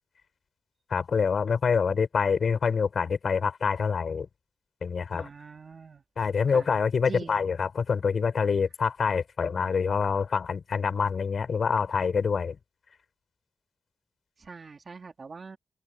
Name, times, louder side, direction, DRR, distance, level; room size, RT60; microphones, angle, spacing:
voice 1, 0.9-4.3 4.8-5.3 6.2-12.6, left 5 dB, 65° left, 4.8 m, -26 dB
voice 2, 5.1-6.0 6.5-6.7 7.1-7.5 14.4-15.6, right 4 dB, 45° right, 4.1 m, -43 dB
open air
wide cardioid pair, 115°, 0 cm